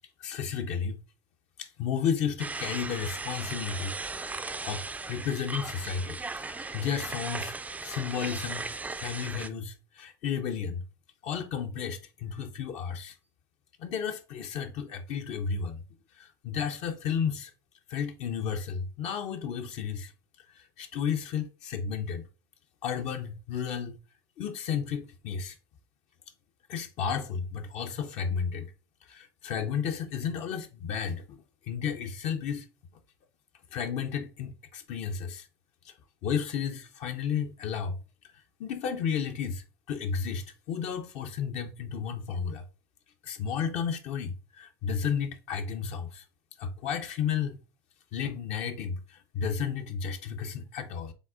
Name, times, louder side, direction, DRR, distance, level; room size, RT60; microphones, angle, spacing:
voice 1, 0.2-1.0 1.6-10.8 11.2-13.2 13.8-15.8 16.1-17.5 17.9-20.1 20.5-22.2 22.8-24.0 24.4-25.6 26.7-28.7 29.0-31.4 31.6-32.7 33.7-35.5 35.8-35.9 36.2-38.0 38.2-42.7 43.2-46.2 46.6-47.6 48.1-51.1, left 7 dB, 55° left, 0.6 m, -33 dB
sound 1, 2.4-9.5, right 3 dB, 10° right, 0.3 m, -37 dB
5.1 x 3.5 x 2.4 m
hypercardioid pair, 85°, 14 cm